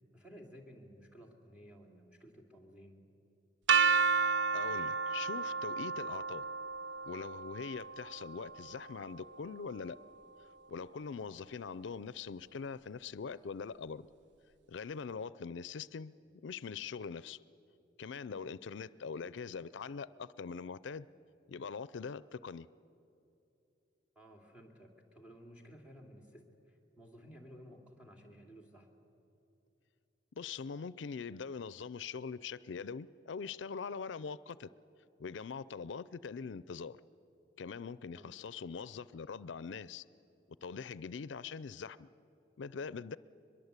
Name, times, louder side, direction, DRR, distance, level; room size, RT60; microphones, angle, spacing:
voice 1, 0.1-3.0 24.2-28.9 38.1-38.3, equal, 5° right, 1 dB, 2.7 m, -55 dB
sound 1, 3.7-9.6, right 5 dB, 70° right, 0.5 m, -32 dB
voice 2, 4.5-6.5 7.0-10.0 10.7-14.1 14.7-16.1 16.4-17.4 18.0-21.1 21.5-22.7 30.4-34.7 35.2-37.0 37.6-40.0 40.6-42.1 42.6-43.2, left 5 dB, 75° left, 17 dB, 0.4 m, -42 dB
22.5 x 22.0 x 8.2 m, 2.8 s
head